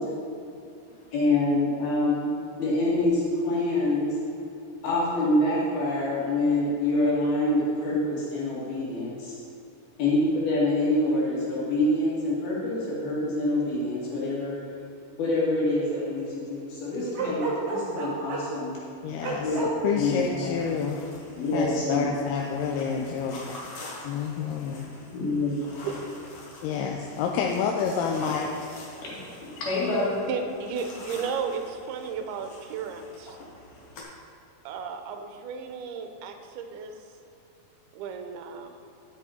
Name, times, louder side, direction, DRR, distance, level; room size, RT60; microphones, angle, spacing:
voice 1, 1.1-2.3 2.6-4.1 4.8-9.3 10.0-14.6 15.2-18.8 19.4-19.6 19.9-20.5 21.4-22.1 25.1-25.6 29.5-30.2, left 2 dB, 70° left, -7 dB, 4.0 m, -26 dB
Bark, 17.1-18.6 19.2-19.7, right 3 dB, 60° right, 1.7 m, -30 dB
voice 2, 19.0-21.0 21.5-23.6 24.1-24.8 26.6-28.5, left 6 dB, 90° left, 0 dB, 2.7 m, -29 dB
sound 1, 19.2-34.0, left 2 dB, 55° left, 1.8 m, -45 dB
voice 3, 30.3-33.4 34.7-36.9 37.9-38.8, right 6 dB, 85° right, 6 dB, 2.6 m, -34 dB
13.0 x 6.8 x 4.3 m, 2.8 s
omnidirectional pair, 4.5 m